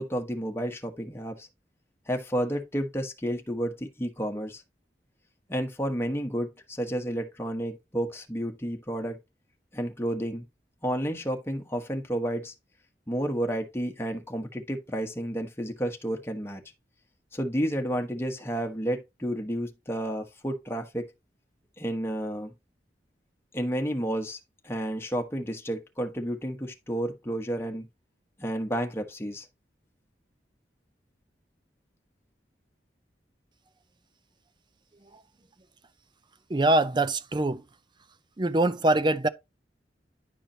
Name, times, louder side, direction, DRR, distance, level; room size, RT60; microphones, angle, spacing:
voice 1, 0.0-1.5 2.1-4.6 5.5-9.2 9.7-10.4 10.8-12.5 13.1-16.6 17.3-21.1 21.8-22.5 23.5-24.4 24.6-27.9 28.4-29.5, equal, 15° left, 1.2 m, -31 dB
voice 2, 36.5-37.6 38.4-39.3, right 2 dB, 25° right, 0.6 m, -24 dB
10.0 x 4.9 x 2.8 m
head